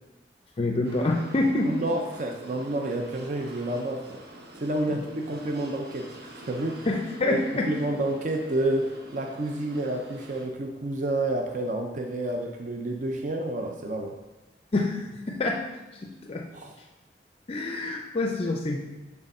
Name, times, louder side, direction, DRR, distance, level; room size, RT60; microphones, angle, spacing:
voice 1, 0.6-1.7 4.9-5.0 6.9-7.7 14.7-15.6 15.9-16.5 17.5-18.8, left 2 dB, 35° left, 2 dB, 0.4 m, -27 dB
sound 1, 0.8-10.5, right 1 dB, 65° right, 1.0 m, -46 dB
voice 2, 1.6-4.2 4.6-6.9 7.2-7.4 7.7-14.2 16.5-16.8, right 1 dB, 45° right, 2 dB, 0.5 m, -29 dB
6.5 x 3.5 x 5.3 m, 1.1 s
head